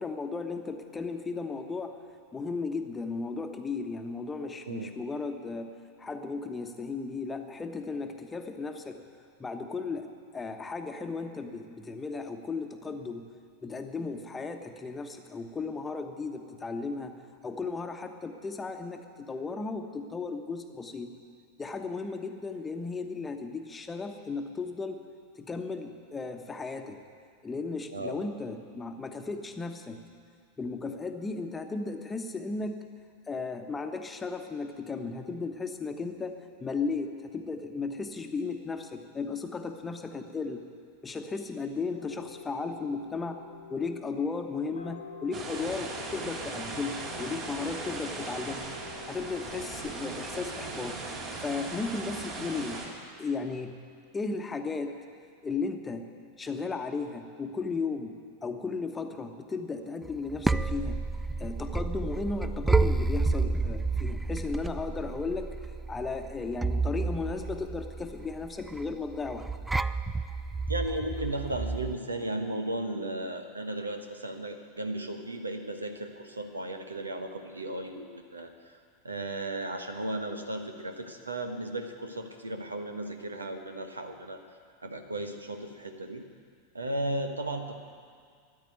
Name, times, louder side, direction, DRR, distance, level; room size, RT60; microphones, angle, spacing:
voice 1, 0.0-1.9 2.3-5.7 6.0-9.0 9.4-10.1 10.3-13.3 13.6-17.2 17.4-21.1 21.6-25.0 25.4-27.0 27.4-30.0 30.6-32.8 33.3-40.6 41.0-43.4 43.7-48.7 49.1-51.0 51.4-52.8 53.2-53.8 54.1-54.9 55.4-56.0 56.4-58.2 58.4-61.0 61.4-65.5 65.9-69.4, left 4 dB, 15° left, 5 dB, 1.2 m, -35 dB
voice 2, 4.6-5.0 27.9-28.3 70.7-78.8 79.0-84.4 84.8-86.2 86.7-87.7, right 1 dB, 80° right, 6 dB, 1.2 m, -35 dB
sound 1, 41.9-51.6, left 6 dB, 70° left, 1.1 m, -48 dB
sound 2, 45.3-52.9, right 3 dB, 35° right, 3.4 m, -38 dB
sound 3, 60.1-71.9, right 3 dB, 5° right, 0.4 m, -30 dB
13.5 x 10.5 x 9.4 m, 2.2 s
figure-of-eight pair, 90°, 0 cm